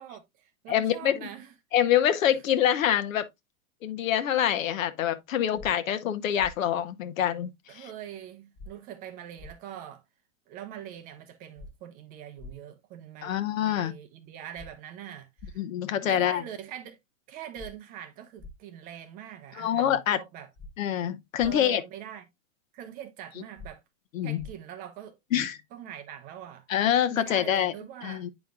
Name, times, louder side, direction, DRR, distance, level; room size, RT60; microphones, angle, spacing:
voice 1, 0.0-1.5 2.3-2.4 7.7-10.0 10.5-15.6 16.1-17.0 17.3-20.5 21.4-22.2 22.7-23.8 24.2-25.2 25.7-26.6 27.1-28.3, right 10 dB, 20° right, 0.5 m, -43 dB
voice 2, 0.7-1.1 1.7-3.2 3.8-7.8 13.2-13.9 15.6-16.4 19.6-20.2 20.8-21.8 24.1-24.4 25.3-25.6 26.7-27.7 28.0-28.3, left 10 dB, 70° left, 1.0 m, -25 dB
sound 1, 5.6-5.7 6.4-6.5 8.6-8.7 9.4-9.5 11.6-11.7 12.4-12.5 14.6-14.7 15.4-15.5 17.6-17.7 18.4-18.5 20.6-20.7 21.4-21.5 23.6-23.7 24.4-24.5, left 2 dB, 30° left, 1.2 m, -43 dB
8.9 x 5.2 x 2.3 m
hypercardioid pair, 140°, 41 cm